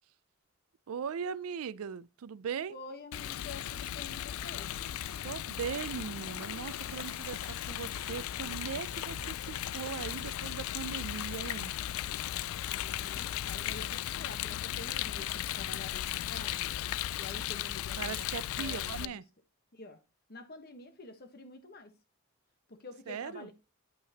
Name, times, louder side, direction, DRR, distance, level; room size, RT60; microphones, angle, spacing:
voice 1, 0.9-2.8 5.2-11.7 18.0-19.2 23.1-23.5, right 7 dB, 85° right, 0.4 m, -39 dB
voice 2, 2.7-4.7 12.3-16.7 17.2-19.2 19.7-20.0 20.3-22.0 22.7-23.5, left 3 dB, 45° left, 1.2 m, -48 dB
Rain, 3.1-19.1, left 12 dB, 75° left, 0.3 m, -36 dB
sound 1, 3.6-12.1, right 2 dB, 25° right, 0.7 m, -55 dB
9.0 x 5.6 x 2.9 m
head